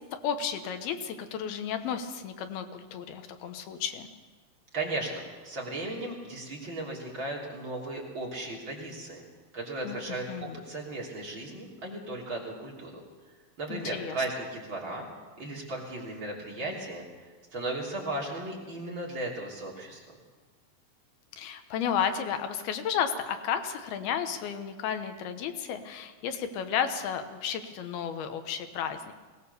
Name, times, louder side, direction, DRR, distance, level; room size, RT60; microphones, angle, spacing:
voice 1, 0.2-4.1 9.8-10.0 10.3-10.6 13.7-14.2 21.4-29.1, left 8 dB, 80° left, 8 dB, 3.1 m, -32 dB
voice 2, 4.7-9.2 9.5-13.0 13.6-15.1 15.4-17.0 17.5-20.2, right 2 dB, 35° right, -3 dB, 3.6 m, -36 dB
21.0 x 18.5 x 6.8 m, 1.4 s
omnidirectional pair, 4.4 m